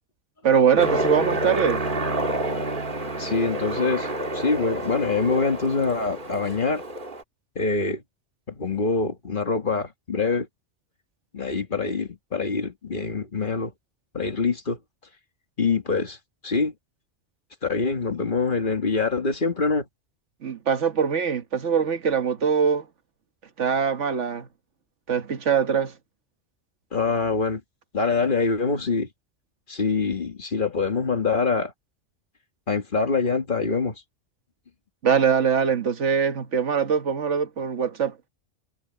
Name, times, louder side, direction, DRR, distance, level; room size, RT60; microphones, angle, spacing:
voice 1, 0.4-1.8 20.4-22.8 23.6-24.5 25.1-25.9 35.0-38.1, right 6 dB, 80° right, 1.6 m, -22 dB
Aircraft, 0.8-7.2, right 2 dB, 45° right, 2.1 m, -28 dB
voice 2, 3.2-6.8 7.6-8.0 8.5-10.5 11.3-13.7 14.1-14.8 15.6-16.2 16.4-16.7 17.6-19.9 26.9-27.6 27.9-29.1 29.7-31.7 32.7-34.0, left 4 dB, 45° left, 1.8 m, -25 dB
omnidirectional pair, 1.2 m